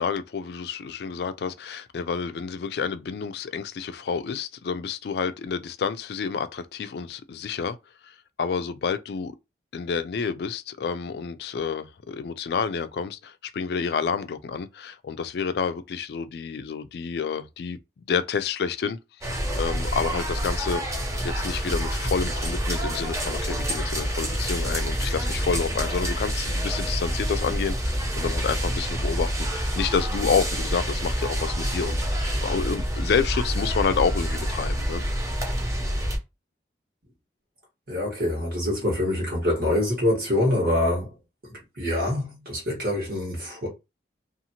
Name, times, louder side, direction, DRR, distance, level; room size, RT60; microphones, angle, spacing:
voice 1, 0.0-7.8 8.0-9.3 9.7-17.8 18.1-19.0 19.3-20.8 21.2-35.0, left 6 dB, 60° left, 0.3 m, -29 dB
sound 1, 19.2-36.2, equal, 15° right, 0.5 m, -27 dB
voice 2, 37.9-41.2 41.4-43.7, left 1 dB, 50° right, 1.3 m, -25 dB
2.8 x 2.4 x 2.8 m
head